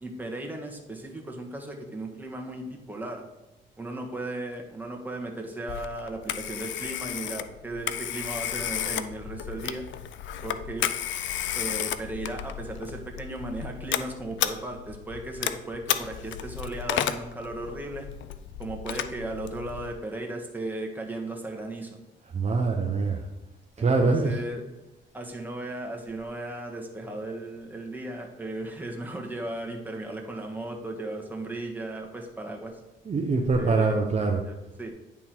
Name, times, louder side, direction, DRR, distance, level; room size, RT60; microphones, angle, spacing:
voice 1, 0.0-3.2 3.8-9.8 10.4-10.9 11.5-18.1 18.6-22.0 23.8-24.6 25.1-32.8 33.6-34.9, right 2 dB, 10° right, 1 dB, 1.4 m, -36 dB
Telephone, 5.7-19.9, left 10 dB, 70° left, 0.5 m, -33 dB
voice 2, 22.3-23.2 23.8-24.4 33.0-34.4, right 3 dB, 35° right, 1 dB, 0.8 m, -24 dB
10.0 x 3.6 x 4.5 m, 0.98 s
cardioid pair, 90°, 20 cm